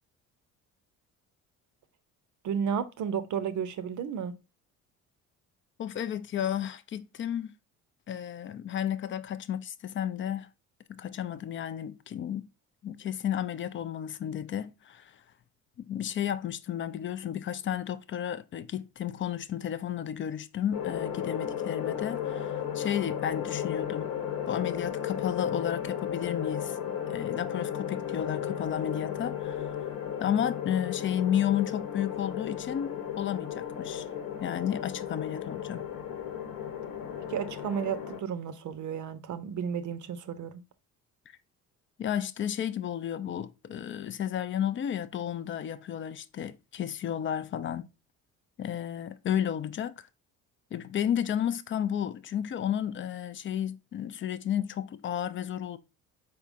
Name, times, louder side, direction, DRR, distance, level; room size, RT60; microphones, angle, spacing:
voice 1, 2.4-4.3 37.3-40.6, right 7 dB, 45° right, 0.6 m, -32 dB
voice 2, 5.8-7.5 8.1-10.5 10.9-12.5 12.8-15.1 15.8-24.1 24.5-26.8 27.1-29.7 30.2-34.1 34.4-35.8 42.0-47.9 48.6-50.0 50.7-55.8, left 10 dB, 30° left, 0.4 m, -32 dB
sound 1, 20.7-38.2, left 9 dB, 55° left, 1.0 m, -34 dB
4.5 x 3.6 x 2.5 m
hypercardioid pair, 55°, 42 cm